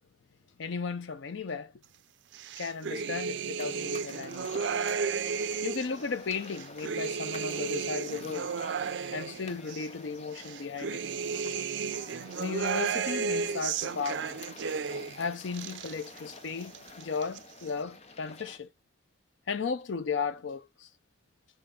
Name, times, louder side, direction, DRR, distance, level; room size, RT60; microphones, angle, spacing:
voice 1, 0.6-1.7 2.6-4.6 5.6-8.5 9.1-11.0 12.4-14.4 15.2-18.7 19.5-20.9, left 5 dB, 90° left, 0.5 m, -35 dB
sound 1, 2.3-6.0 6.4-9.9 10.3-15.2 15.5-16.3 16.6-17.4, right 6 dB, 80° right, 0.4 m, -33 dB
sound 2, 3.6-18.6, left 3 dB, 35° left, 0.7 m, -49 dB
7.9 x 3.8 x 3.8 m
head